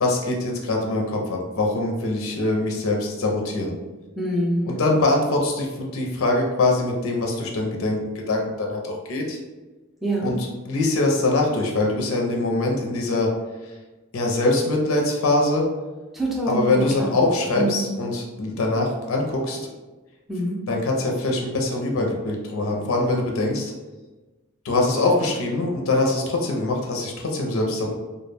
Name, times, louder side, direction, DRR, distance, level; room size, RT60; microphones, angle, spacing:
voice 1, 0.0-3.7 4.7-9.4 10.2-13.3 13.6-13.8 14.1-15.7 16.5-19.7 20.7-23.7 24.6-27.9, left 2 dB, 70° left, 0 dB, 0.4 m, -23 dB
voice 2, 4.2-4.7 10.0-10.3 16.1-17.1 17.6-17.8 20.3-20.6, right 1 dB, ahead, -4 dB, 0.4 m, -25 dB
2.2 x 2.1 x 3.2 m, 1.2 s
head